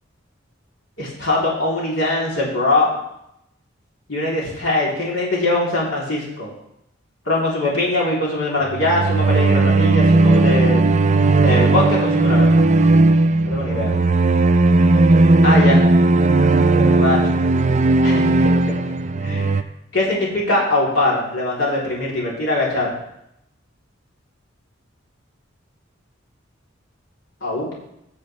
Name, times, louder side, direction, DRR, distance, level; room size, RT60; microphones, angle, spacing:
voice 1, 1.0-3.0 4.1-6.5 7.2-10.8 11.4-12.6 13.4-14.0 15.4-15.8 16.7-17.4 18.0-18.7 19.2-19.6 19.9-23.0 27.4-27.7, left 2 dB, 90° left, -5 dB, 3.2 m, -22 dB
sound 1, 8.7-19.6, right 2 dB, 40° right, 0.4 m, -16 dB
16.0 x 7.1 x 3.3 m, 0.80 s
head